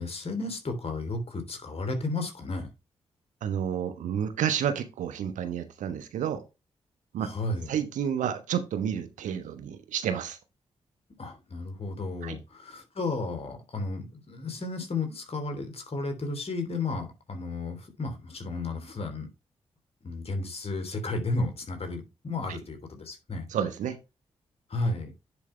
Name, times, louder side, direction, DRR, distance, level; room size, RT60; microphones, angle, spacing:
voice 1, 0.0-2.7 7.2-7.7 11.2-19.3 20.0-23.5 24.7-25.1, left 3 dB, 50° left, 3.3 m, -33 dB
voice 2, 3.4-6.4 7.1-7.3 7.7-10.4 12.2-12.4 22.5-22.6 23.5-24.0, right 8 dB, 85° right, 1.1 m, -30 dB
10.0 x 5.0 x 3.3 m
supercardioid pair, 40°, 13 cm